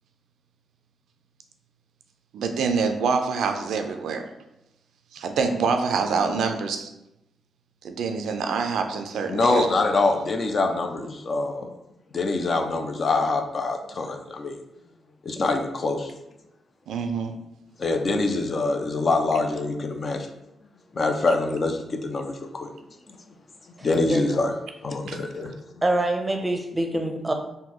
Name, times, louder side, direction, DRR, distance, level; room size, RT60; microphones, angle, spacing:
voice 1, 2.3-4.3 5.1-6.9 7.8-9.7 16.9-17.4 25.1-25.2, right 5 dB, 85° right, 6 dB, 0.3 m, -26 dB
voice 2, 9.3-11.7 12.1-14.6 15.2-16.1 17.8-20.3 20.9-22.7 23.8-24.5 24.8-25.5, left 3 dB, 50° left, 6 dB, 0.4 m, -24 dB
voice 3, 23.8-24.2 25.8-27.3, right 1 dB, 20° right, 4 dB, 0.6 m, -25 dB
3.6 x 2.1 x 2.9 m, 0.87 s
cardioid pair, 65°, 0 cm